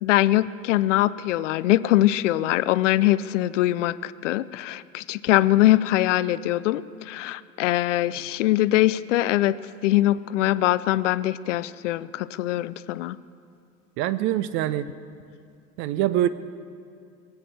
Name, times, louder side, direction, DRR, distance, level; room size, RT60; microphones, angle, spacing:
voice 1, 0.0-9.6 9.8-13.2, left 15 dB, 55° left, 17 dB, 0.5 m, -22 dB
voice 2, 14.0-14.9 15.8-16.3, right 13 dB, 30° right, 13 dB, 0.4 m, -24 dB
23.0 x 8.2 x 6.8 m, 2.4 s
figure-of-eight pair, 80°, 46 cm